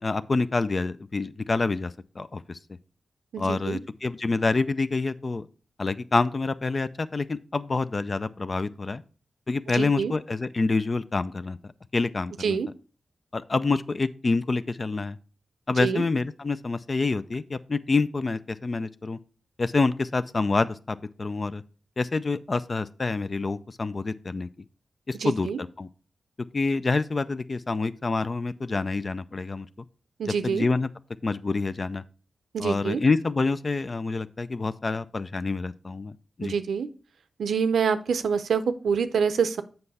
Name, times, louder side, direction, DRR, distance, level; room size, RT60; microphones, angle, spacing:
voice 1, 0.0-2.6 3.4-5.5 5.8-9.0 9.5-11.6 11.9-12.6 13.3-15.2 15.7-19.2 19.6-21.6 22.0-24.5 25.1-25.9 26.5-29.7 30.2-30.9 31.2-32.0 32.6-36.1 36.4-36.5, left 3 dB, 45° left, 14 dB, 0.5 m, -27 dB
voice 2, 3.3-3.8 9.7-10.1 12.4-12.7 15.8-16.0 25.2-25.6 30.2-30.6 32.5-33.0 36.4-36.9 37.4-39.6, right 6 dB, 85° right, 11 dB, 0.6 m, -26 dB
7.8 x 5.4 x 4.1 m, 0.37 s
cardioid pair, 50°, 0 cm